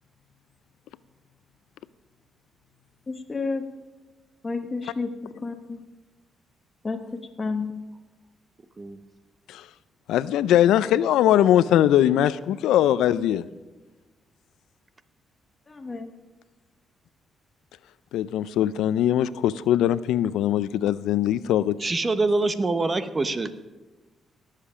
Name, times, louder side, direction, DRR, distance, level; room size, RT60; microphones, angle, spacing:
voice 1, 3.1-3.6 4.4-5.8 6.8-7.7 15.7-16.1, left 4 dB, 30° left, 3 dB, 1.1 m, -31 dB
voice 2, 10.1-13.4 18.1-21.9, left 11 dB, 90° left, 16 dB, 0.4 m, -21 dB
voice 3, 21.8-23.5, right 3 dB, 30° right, 11 dB, 0.9 m, -25 dB
18.0 x 7.5 x 5.0 m, 1.2 s
cardioid pair, 80°, 0 cm